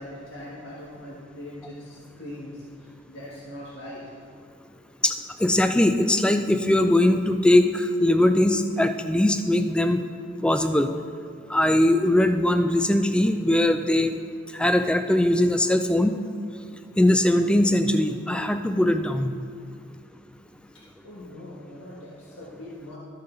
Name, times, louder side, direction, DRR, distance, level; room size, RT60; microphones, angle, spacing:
voice 1, 0.0-4.0 20.7-23.0, left 1 dB, 85° left, -7 dB, 1.6 m, -41 dB
voice 2, 5.4-10.0 10.4-10.9 11.5-14.1 14.5-16.2 17.0-19.3, left 1 dB, 5° left, 8 dB, 0.3 m, -21 dB
13.0 x 6.7 x 3.9 m, 2.5 s
head